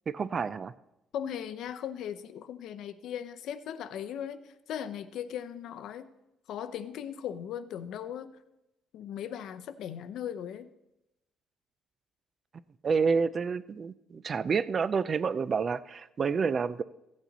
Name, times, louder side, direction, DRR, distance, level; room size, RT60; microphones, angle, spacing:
voice 1, 0.1-0.7 12.8-16.8, right 5 dB, 30° right, 17 dB, 0.3 m, -29 dB
voice 2, 1.1-6.1 6.5-8.4 8.9-10.7, left 9 dB, 65° left, 11 dB, 0.6 m, -38 dB
16.0 x 8.6 x 4.0 m, 0.91 s
cardioid pair, 170°, 0 cm